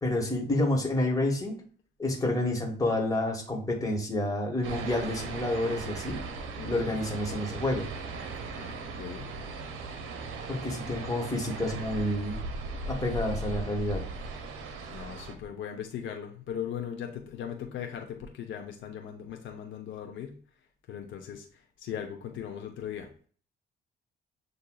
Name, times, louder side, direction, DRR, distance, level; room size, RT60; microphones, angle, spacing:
voice 1, 0.0-1.6 2.0-6.2 6.6-7.9 10.5-12.4 12.8-14.0, left 1 dB, 15° left, 0 dB, 1.5 m, -29 dB
sound 1, 4.6-15.4, right 3 dB, 85° right, 0.7 m, -38 dB
voice 2, 6.6-6.9 8.5-9.3 14.9-20.4 20.9-23.1, left 8 dB, 70° left, 3 dB, 0.8 m, -39 dB
7.7 x 2.6 x 2.3 m, 0.43 s
cardioid pair, 90°, 20 cm